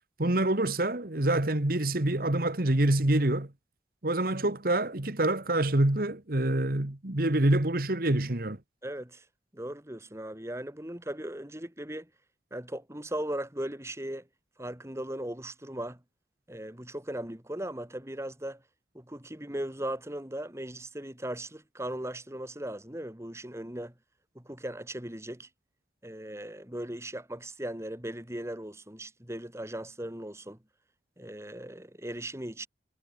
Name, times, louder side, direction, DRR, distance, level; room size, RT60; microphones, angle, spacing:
voice 1, 0.2-3.5 4.0-8.6, right 1 dB, 55° right, 1.8 m, -26 dB
voice 2, 8.8-9.2 9.5-12.1 12.5-14.3 14.6-16.0 16.5-18.6 18.9-23.9 24.3-25.5 26.0-30.6 31.2-32.7, right 1 dB, 15° right, 2.5 m, -38 dB
head